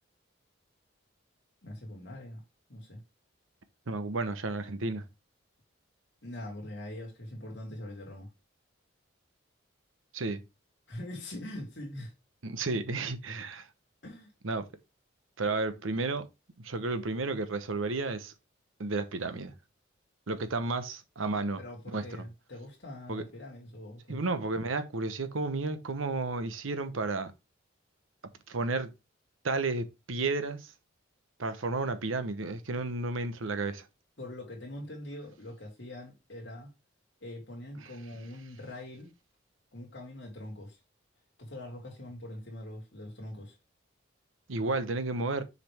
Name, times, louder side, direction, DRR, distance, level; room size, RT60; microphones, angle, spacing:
voice 1, 1.6-2.4 2.7-3.0 6.2-8.3 10.9-12.1 14.0-14.3 21.6-24.2 34.2-36.7 37.2-39.1 39.7-40.8 41.4-43.6, left 1 dB, 60° left, 2.8 m, -43 dB
voice 2, 3.9-5.0 10.1-10.4 12.4-13.7 14.4-14.7 15.4-16.3 16.6-18.3 18.8-19.5 20.3-21.6 21.9-22.2 23.1-23.2 24.1-27.3 28.5-28.9 29.4-30.7 31.4-33.8 44.5-45.4, right 3 dB, 85° right, 0.9 m, -32 dB
6.6 x 5.2 x 3.4 m
head